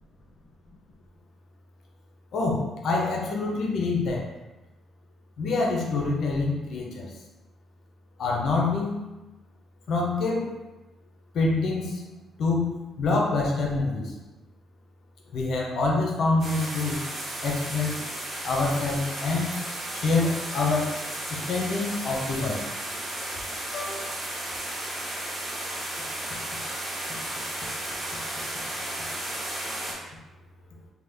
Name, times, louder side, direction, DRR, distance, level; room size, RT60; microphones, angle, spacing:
voice 1, 2.3-4.3 5.4-7.1 8.2-9.0 9.9-10.5 11.3-12.0 12.4-14.1 15.3-17.0 17.4-18.0 18.4-19.6 19.9-20.9 21.3-22.7 23.7-24.1, left 3 dB, 70° left, -1 dB, 0.6 m, -26 dB
sound 1, 16.4-29.9, right 1 dB, 40° right, 1.1 m, -34 dB
2.9 x 2.2 x 3.3 m, 1.1 s
cardioid pair, 90°, 0 cm